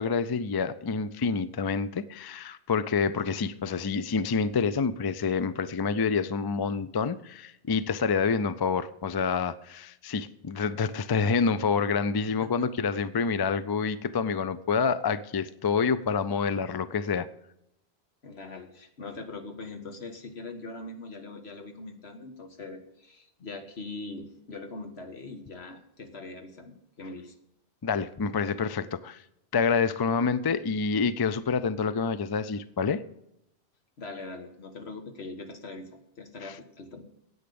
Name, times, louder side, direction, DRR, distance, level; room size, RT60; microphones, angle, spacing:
voice 1, 0.0-17.3 27.8-29.2 29.5-33.0 36.4-36.6, left 5 dB, 40° left, 15 dB, 0.3 m, -27 dB
voice 2, 18.2-27.4 34.0-37.0, left 3 dB, 75° left, 6 dB, 1.7 m, -42 dB
10.0 x 8.8 x 6.9 m, 0.82 s
omnidirectional pair, 1.1 m